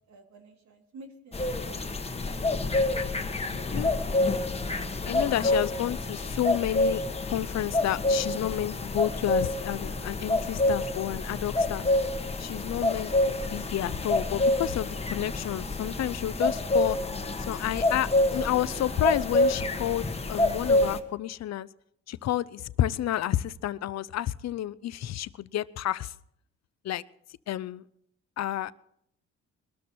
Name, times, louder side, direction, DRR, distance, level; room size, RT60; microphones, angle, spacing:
voice 1, 0.1-2.0, right 2 dB, 65° right, 3 dB, 2.7 m, -51 dB
sound 1, 1.3-21.0, left 2 dB, 20° left, 1.2 m, -27 dB
voice 2, 3.5-3.9 5.1-7.0 7.3-11.9 12.4-17.0 17.5-21.7 22.1-26.1 26.8-27.0 27.5-27.8 28.4-28.7, left 12 dB, 60° left, 18 dB, 0.6 m, -30 dB
21.0 x 13.0 x 4.4 m, 0.73 s
cardioid pair, 90°, 30 cm